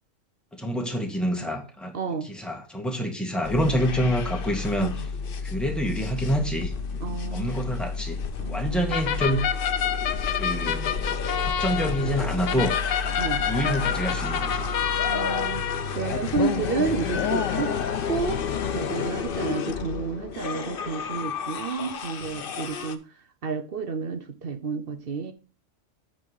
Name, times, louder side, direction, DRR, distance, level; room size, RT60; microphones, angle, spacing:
voice 1, 0.5-1.9 2.3-4.9 5.4-7.0 7.3-8.2 8.5-9.4 10.4-11.2 11.4-12.7 13.5-14.6, equal, ahead, 1.7 m, -27 dB
voice 2, 1.9-2.3 7.0-7.9 8.4-8.8 13.2-13.4 15.0-17.7 18.1-23.0 23.4-25.3, right 5 dB, 50° right, 0.9 m, -31 dB
sound 1, 3.4-23.0, left 5 dB, 50° left, 0.8 m, -31 dB
sound 2, 8.9-19.2, left 9 dB, 75° left, 1.1 m, -29 dB
8.6 x 3.9 x 6.4 m
omnidirectional pair, 1.4 m